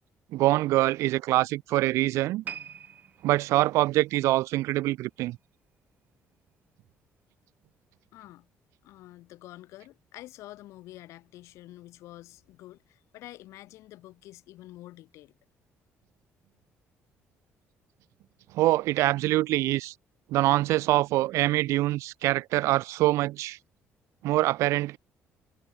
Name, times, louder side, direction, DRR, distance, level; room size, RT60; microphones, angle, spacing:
voice 1, 0.3-2.4 3.2-5.4 18.5-19.9 20.3-23.6 24.2-25.0, right 17 dB, 90° right, 0.5 m, -24 dB
sound 1, 2.4-5.7 6.0-6.3 7.0-7.1, right 8 dB, 35° right, 1.4 m, -45 dB
voice 2, 8.1-8.5 8.8-15.3, left 16 dB, 90° left, 4.3 m, -48 dB
cardioid pair, 175°, 5 cm